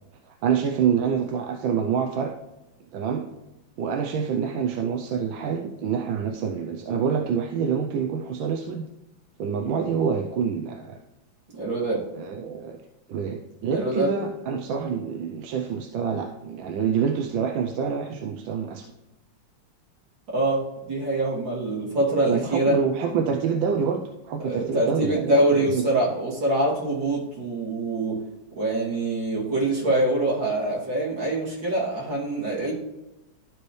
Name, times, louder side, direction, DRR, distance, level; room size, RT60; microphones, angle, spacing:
voice 1, 0.4-2.3 2.9-3.2 3.8-8.8 9.4-11.0 12.1-12.8 13.1-18.9 22.3-25.8, right 6 dB, 90° right, 3 dB, 1.4 m, -26 dB
voice 2, 11.5-12.0 13.7-14.2 20.3-22.8 24.4-28.2 28.6-32.7, right 1 dB, 75° right, -6 dB, 3.3 m, -24 dB
12.5 x 4.6 x 3.2 m, 1.0 s
omnidirectional pair, 2.1 m